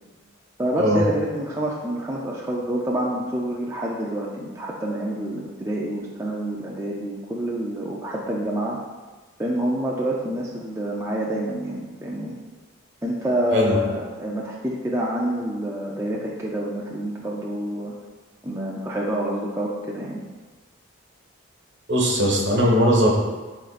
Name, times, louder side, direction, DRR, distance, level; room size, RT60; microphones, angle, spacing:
voice 1, 0.6-8.8 9.4-12.3 13.0-17.9 18.4-20.2, right 1 dB, 15° right, -4 dB, 0.5 m, -27 dB
voice 2, 21.9-23.1, equal, 60° right, -2 dB, 1.6 m, -19 dB
11.5 x 3.9 x 2.5 m, 1.3 s
head